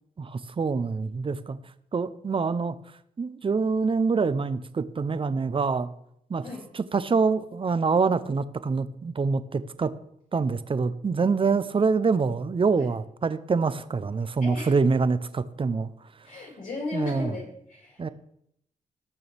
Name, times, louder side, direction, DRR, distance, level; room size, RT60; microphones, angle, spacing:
voice 1, 0.2-1.6 1.9-2.8 3.2-5.9 6.3-6.4 6.7-9.9 10.3-15.9 16.9-17.3 18.0-18.1, right 4 dB, 40° right, 14 dB, 0.7 m, -25 dB
voice 2, 14.4-14.7 16.2-18.1, left 2 dB, 70° left, -3 dB, 5.2 m, -35 dB
18.5 x 6.8 x 3.5 m, 0.74 s
cardioid pair, 70°, 14 cm